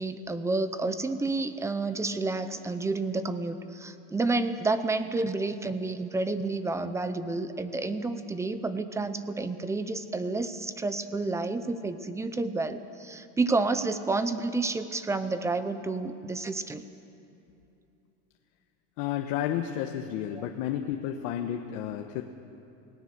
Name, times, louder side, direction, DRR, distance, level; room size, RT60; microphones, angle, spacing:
voice 1, 0.0-16.8 20.3-20.5, right 3 dB, 10° right, 11 dB, 0.6 m, -30 dB
voice 2, 19.0-22.2, left 10 dB, 80° left, 4 dB, 1.2 m, -31 dB
29.0 x 17.5 x 6.7 m, 2.8 s
cardioid pair, 170°, 30 cm